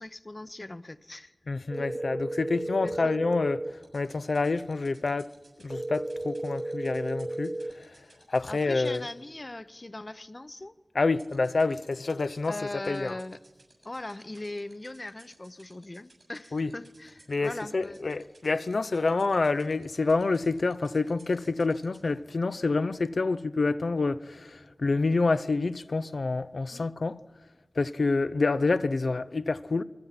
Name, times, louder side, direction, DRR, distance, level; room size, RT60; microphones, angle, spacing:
voice 1, 0.0-1.3 1.8-1.9 2.8-3.2 8.5-10.7 12.5-13.4 13.8-18.1 26.7-26.9, left 2 dB, 40° left, 0.8 m, -40 dB
voice 2, 1.5-3.6 3.9-5.3 5.6-7.9 8.3-9.1 10.9-12.5 12.9-13.2 16.5-16.7 17.3-27.2 27.8-29.8, left 3 dB, 80° left, 0.6 m, -27 dB
sound 1, 1.7-3.7 5.7-7.7, right 1 dB, 35° right, 1.2 m, -34 dB
sound 2, 3.8-9.1 11.2-22.1, right 3 dB, 85° right, 7.5 m, -57 dB
29.5 x 21.5 x 5.9 m
wide cardioid pair, 55°, 0 cm